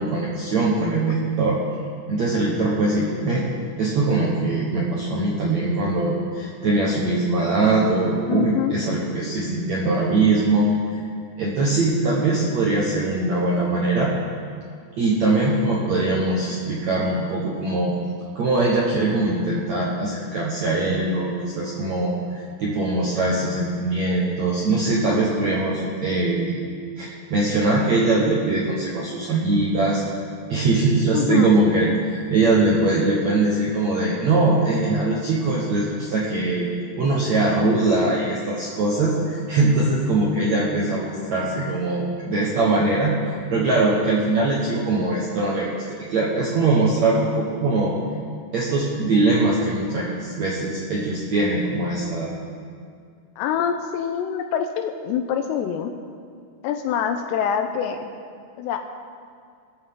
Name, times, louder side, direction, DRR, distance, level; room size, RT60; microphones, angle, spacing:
voice 1, 0.0-1.6 2.1-3.4 3.8-11.0 11.4-14.1 15.0-17.9 18.4-26.6 27.0-30.0 30.5-36.7 37.0-43.2 43.5-47.9 48.5-52.3, right 2 dB, 60° right, -4 dB, 1.9 m, -22 dB
voice 2, 8.3-8.7 31.1-31.5 53.4-55.9 56.6-58.1 58.6-58.8, left 8 dB, 85° left, 5 dB, 2.8 m, -25 dB
20.5 x 13.5 x 3.8 m, 2.2 s
omnidirectional pair, 5.0 m